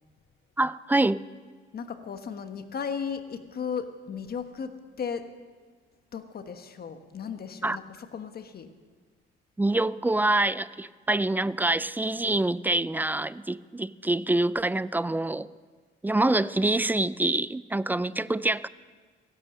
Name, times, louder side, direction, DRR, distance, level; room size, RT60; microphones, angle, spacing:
voice 1, 0.6-1.2 7.6-7.8 9.6-15.5 16.0-18.7, right 2 dB, 10° right, 18 dB, 0.4 m, -26 dB
voice 2, 1.7-5.2 6.1-8.7, left 6 dB, 50° left, 8 dB, 1.3 m, -35 dB
16.0 x 12.0 x 6.6 m, 1.5 s
cardioid pair, 90°, 20 cm